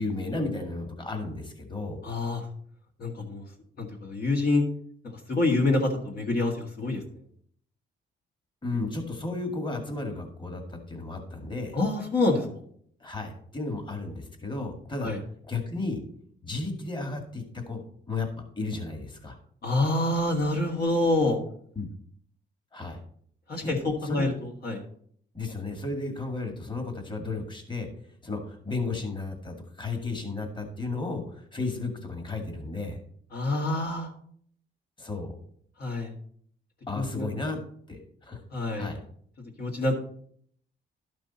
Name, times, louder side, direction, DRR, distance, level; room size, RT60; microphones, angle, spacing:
voice 1, 0.0-2.0 8.6-11.8 13.0-15.1 15.4-16.0 16.4-17.8 18.1-18.3 18.6-19.4 21.8-21.9 22.7-23.0 23.6-23.7 24.0-24.2 25.3-27.9 28.2-33.0 35.0-35.3 36.9-37.6 37.9-38.4 38.7-39.0, left 3 dB, 25° left, 4 dB, 2.1 m, -33 dB
voice 2, 2.0-2.4 3.0-3.4 3.8-4.6 5.3-7.0 11.7-12.5 15.0-15.2 19.6-21.4 23.5-23.8 24.0-24.8 33.3-34.1 35.8-36.1 37.0-37.3 38.5-38.9 39.6-40.0, left 2 dB, 50° left, 0 dB, 1.8 m, -26 dB
12.0 x 6.1 x 4.2 m, 0.62 s
cardioid pair, 90°, 20 cm